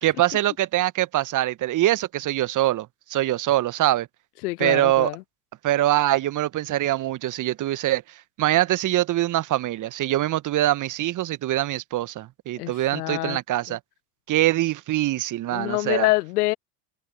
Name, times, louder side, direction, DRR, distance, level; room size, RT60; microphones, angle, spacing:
voice 1, 0.0-4.1 4.6-5.1 5.6-8.0 8.4-13.8 14.3-16.1, right 14 dB, 40° right, 1.1 m, -23 dB
voice 2, 4.4-5.2 12.6-13.4 13.7-13.8 15.5-16.6, left 21 dB, 70° left, 0.6 m, -26 dB
hypercardioid pair, 70°, 49 cm